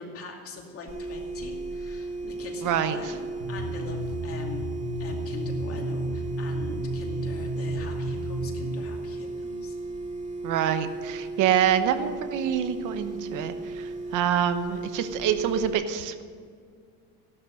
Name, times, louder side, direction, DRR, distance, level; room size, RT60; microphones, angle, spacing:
voice 1, 0.0-9.8, left 3 dB, 35° left, 1 dB, 2.4 m, -42 dB
sound 1, 0.9-15.7, right 2 dB, 15° right, 2.6 m, -35 dB
voice 2, 2.6-3.0 10.4-16.2, right 9 dB, 45° right, 10 dB, 1.0 m, -26 dB
sound 2, 3.4-8.7, right 1 dB, 75° right, 2.0 m, -33 dB
15.5 x 12.0 x 6.4 m, 2.1 s
cardioid pair, 175°, 42 cm